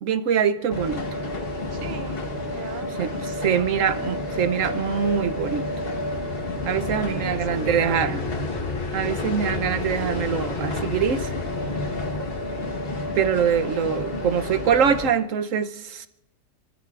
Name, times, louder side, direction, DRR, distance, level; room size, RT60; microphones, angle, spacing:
voice 1, 0.0-1.0 3.0-5.7 6.7-8.2 8.9-11.3 13.2-16.1, right 7 dB, 75° right, 11 dB, 1.1 m, -24 dB
sound 1, 0.7-15.1, left 2 dB, 45° left, 1.4 m, -29 dB
voice 2, 1.7-3.2 3.6-3.8 7.1-8.3, right 6 dB, 55° right, 9 dB, 0.9 m, -38 dB
28.0 x 14.5 x 2.4 m, 0.87 s
omnidirectional pair, 1.4 m